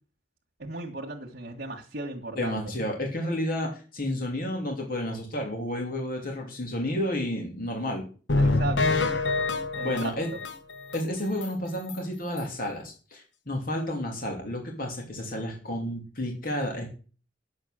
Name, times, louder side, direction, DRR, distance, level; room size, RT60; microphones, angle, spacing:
voice 1, 0.6-2.6 8.4-9.1 9.7-10.4, right 2 dB, 60° right, 0 dB, 1.8 m, -36 dB
voice 2, 2.3-8.1 9.8-10.3 10.9-16.9, left 1 dB, 50° left, 1 dB, 3.1 m, -31 dB
sound 1, 8.3-11.0 11.4-11.5 11.9-12.0 12.4-12.5, left 3 dB, 80° left, 1.3 m, -26 dB
10.5 x 7.7 x 6.5 m, 0.37 s
head